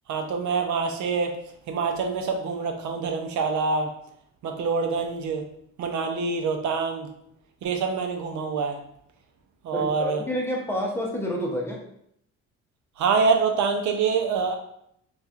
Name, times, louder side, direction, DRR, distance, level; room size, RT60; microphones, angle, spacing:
voice 1, 0.1-1.4 1.7-3.9 4.4-5.4 5.8-7.1 7.6-8.8 9.6-10.2 13.0-14.5, right 5 dB, 70° right, 4 dB, 0.6 m, -25 dB
voice 2, 9.7-11.8, equal, 10° left, -2 dB, 0.8 m, -29 dB
4.2 x 2.4 x 2.4 m, 0.72 s
cardioid pair, 90°, 30 cm